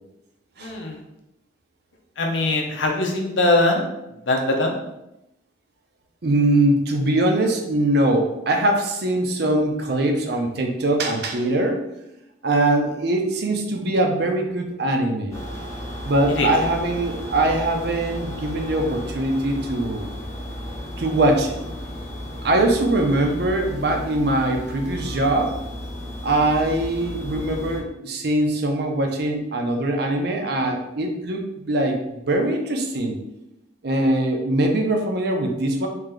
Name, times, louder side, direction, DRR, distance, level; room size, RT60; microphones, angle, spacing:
voice 1, 0.6-1.0 2.2-3.9 4.3-4.8 16.3-16.5, left 2 dB, 80° left, 1 dB, 0.7 m, -21 dB
voice 2, 6.2-11.8 12.4-15.3 16.0-20.1 21.0-21.6 22.4-25.5 26.2-33.2 33.8-35.9, right 1 dB, 55° right, 3 dB, 0.6 m, -22 dB
sound 1, 15.3-27.8, left 1 dB, 15° left, 0.7 m, -34 dB
3.2 x 2.8 x 3.8 m, 0.89 s
head